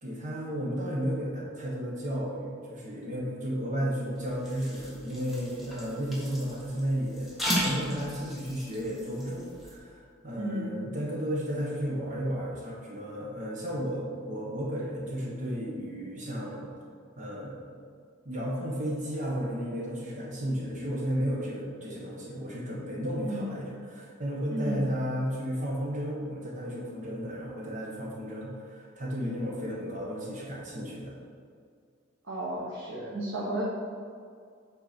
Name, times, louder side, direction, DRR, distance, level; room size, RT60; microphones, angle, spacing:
voice 1, 0.0-16.7 17.2-17.6 18.2-31.1, equal, 40° right, -4 dB, 1.4 m, -33 dB
sound 1, 4.1-9.7, equal, ahead, 1.4 m, -36 dB
voice 2, 10.4-10.8 23.2-23.5 24.5-24.8 32.3-33.6, right 1 dB, 85° right, -6 dB, 1.3 m, -33 dB
8.1 x 4.5 x 4.4 m, 2.1 s
head